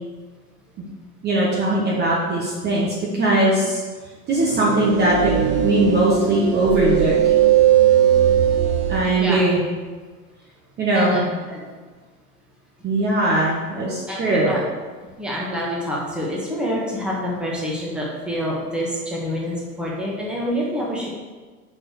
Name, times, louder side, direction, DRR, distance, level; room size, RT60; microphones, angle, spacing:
voice 1, 1.2-3.8 4.3-7.4 8.9-9.6 10.8-11.3 12.8-14.5, right 1 dB, 20° right, -5 dB, 1.3 m, -20 dB
sound 1, 4.4-9.1, right 10 dB, 35° right, 0.9 m, -18 dB
voice 2, 14.1-14.6 15.2-21.1, equal, ahead, -5 dB, 1.5 m, -27 dB
6.1 x 4.8 x 6.3 m, 1.4 s
figure-of-eight pair, 95°, 47 cm